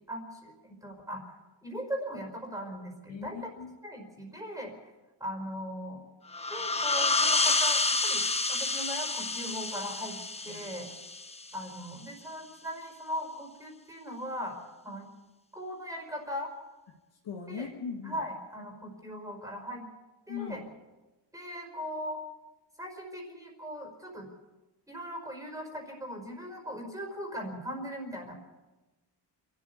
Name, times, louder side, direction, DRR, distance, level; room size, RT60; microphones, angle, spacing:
voice 1, 0.1-1.2 1.6-3.4 3.8-4.7 5.2-6.0 6.5-8.2 8.5-10.2 10.4-10.9 11.5-14.6 14.8-15.1 15.5-16.5 17.5-17.7 18.0-19.8 20.3-20.6 21.3-22.2 22.8-24.3 24.9-28.3, equal, 10° right, 1 dB, 4.8 m, -39 dB
voice 2, 3.1-3.8 10.5-10.6 17.2-18.2 20.3-20.7, left 7 dB, 75° left, 0 dB, 2.3 m, -39 dB
sound 1, 6.3-11.7, left 3 dB, 15° left, 1.0 m, -29 dB
27.0 x 13.5 x 8.3 m, 1.1 s
wide cardioid pair, 160°, 43 cm